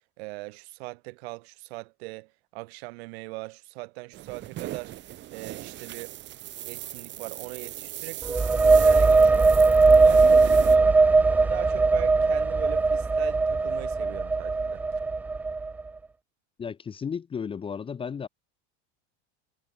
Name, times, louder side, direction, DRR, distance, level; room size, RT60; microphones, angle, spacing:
voice 1, 0.2-4.9 5.3-6.1 6.7-9.5 9.8-11.0 11.3-15.0, right 25 dB, 65° right, 5.7 m, -40 dB
sound 1, 4.1-10.8, right 14 dB, 35° right, 2.9 m, -39 dB
sound 2, 8.2-15.8, right 3 dB, 5° right, 0.3 m, -20 dB
voice 2, 16.6-18.3, left 6 dB, 15° left, 1.3 m, -34 dB
supercardioid pair, 155°, 34 cm